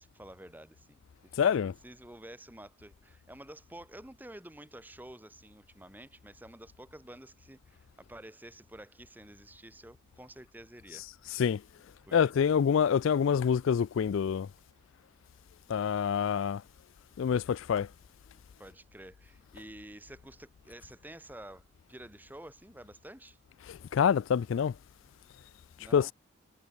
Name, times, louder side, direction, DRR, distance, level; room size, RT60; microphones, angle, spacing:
voice 1, 0.0-11.1 12.0-12.3 18.6-21.6 21.9-23.4 25.8-26.1, right 1 dB, 10° right, 1.1 m, -50 dB
voice 2, 1.4-1.7 10.9-11.0 11.3-11.6 12.1-14.5 15.7-16.6 17.2-17.9 23.7-24.7 25.9-26.1, left 7 dB, 75° left, 0.3 m, -26 dB
head